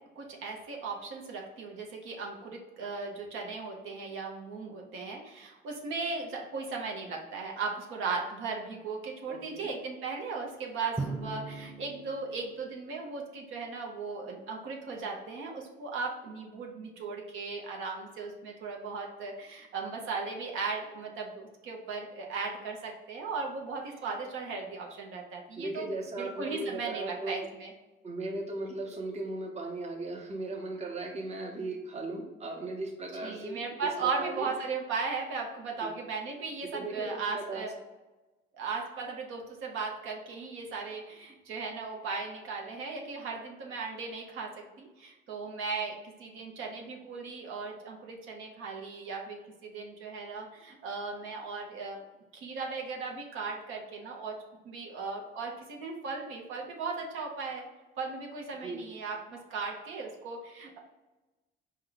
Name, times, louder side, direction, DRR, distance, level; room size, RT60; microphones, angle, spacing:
voice 1, 0.2-27.7 33.2-37.7 38.5-52.0 52.3-54.4 54.6-57.7 58.0-60.8, right 4 dB, 85° right, 0 dB, 0.7 m, -37 dB
voice 2, 9.3-9.7 25.6-27.4 28.0-33.6 34.0-34.5 35.8-35.9 36.7-37.1 37.3-37.6 58.6-58.8, right 2 dB, 35° right, 1 dB, 0.8 m, -37 dB
Drum, 11.0-13.6, right 3 dB, 5° right, 0.3 m, -40 dB
4.4 x 2.2 x 3.8 m, 1.1 s
cardioid pair, 90°, 20 cm